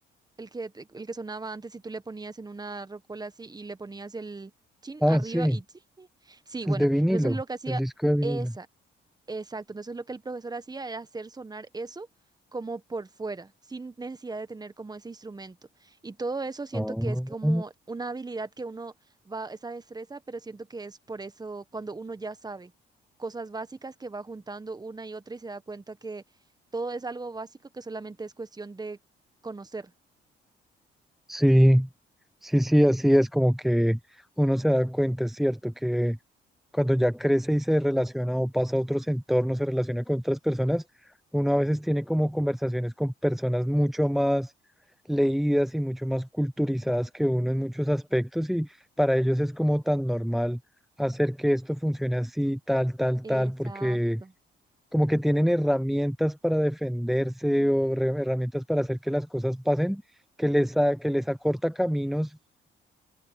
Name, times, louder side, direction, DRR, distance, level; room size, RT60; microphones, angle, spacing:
voice 1, 0.4-4.5 4.8-5.6 6.0-7.8 8.2-8.7 9.3-12.1 12.5-18.9 19.2-22.7 23.2-26.2 26.7-29.0 29.4-29.9 53.2-54.3, right 3 dB, 20° right, 1.3 m, -37 dB
voice 2, 5.0-5.6 6.7-7.4 7.7-8.4 16.7-17.6 31.3-31.9 32.4-36.2 36.7-40.8 41.3-44.5 45.1-50.6 51.0-54.2 54.9-60.0 60.4-62.4, equal, ahead, 0.6 m, -25 dB
cardioid pair, 90°, 20 cm